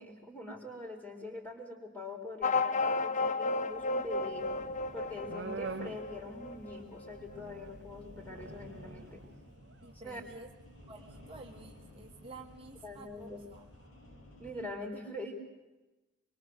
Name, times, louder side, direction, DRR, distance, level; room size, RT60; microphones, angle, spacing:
voice 1, 0.0-4.5 4.9-9.2 9.9-10.2 12.8-13.5 14.4-15.3, left 2 dB, 10° left, 1 dB, 4.5 m, -44 dB
sound 1, 2.4-7.4, left 3 dB, 40° left, 0.8 m, -33 dB
sound 2, 3.7-13.9, right 3 dB, 60° right, 0.9 m, -49 dB
sound 3, 4.3-14.7, left 1 dB, 75° left, 7.2 m, -55 dB
voice 2, 9.8-10.5 10.9-13.6, right 2 dB, 30° right, 1 dB, 1.5 m, -51 dB
25.5 x 23.5 x 8.1 m, 1.1 s
head